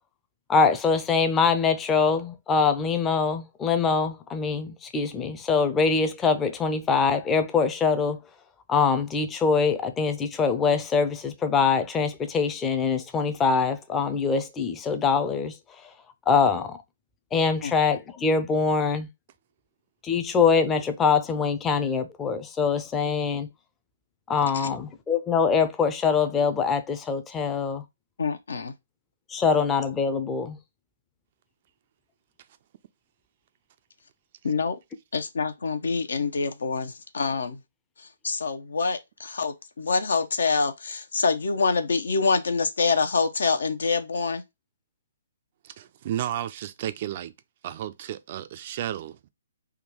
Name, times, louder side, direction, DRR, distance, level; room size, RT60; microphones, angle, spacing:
voice 1, 0.5-8.2 8.7-15.9 16.3-16.8 17.3-19.1 20.0-23.5 24.3-27.8 29.3-30.6, left 5 dB, 15° left, 0.5 m, -24 dB
voice 2, 28.2-28.7 34.4-34.8 35.1-37.6 38.2-44.4, left 4 dB, 75° left, 0.6 m, -26 dB
voice 3, 45.6-47.3 47.6-49.3, right 11 dB, 45° right, 0.3 m, -33 dB
3.6 x 2.3 x 2.9 m
hypercardioid pair, 140°, 0 cm